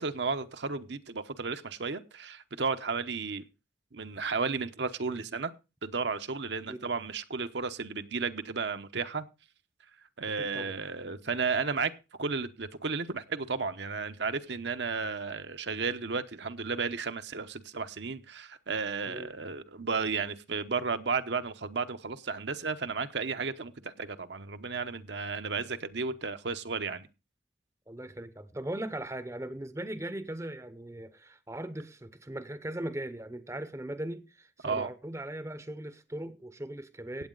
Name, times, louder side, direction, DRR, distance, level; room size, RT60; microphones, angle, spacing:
voice 1, 0.0-3.5 3.9-5.5 5.8-9.2 10.2-11.9 12.2-27.1 34.6-34.9, right 4 dB, 65° right, 0.9 m, -33 dB
voice 2, 10.4-10.7 19.1-19.3 27.9-37.3, right 1 dB, 15° right, 0.7 m, -39 dB
16.5 x 8.4 x 3.9 m
head